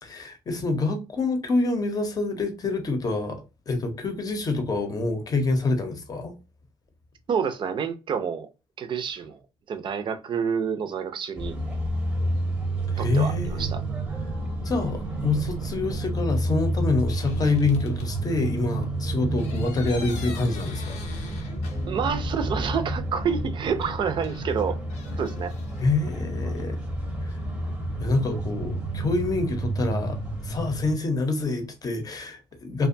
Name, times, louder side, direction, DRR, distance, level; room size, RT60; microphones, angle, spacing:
voice 1, 0.0-6.3 12.9-13.7 14.6-21.0 25.8-26.8 27.2-27.4 28.0-32.9, left 3 dB, 30° left, 0.7 m, -26 dB
voice 2, 7.3-8.5 8.8-9.4 9.7-11.5 13.0-13.8 21.9-24.7 25.2-25.5, right 7 dB, 45° right, 0.5 m, -28 dB
sound 1, 11.4-30.9, right 1 dB, 10° right, 0.7 m, -30 dB
sound 2, 17.1-18.1 19.4-22.2 22.5-22.6 24.2-25.8, left 5 dB, 80° left, 0.6 m, -44 dB
2.4 x 2.2 x 2.5 m
cardioid pair, 100°, 12 cm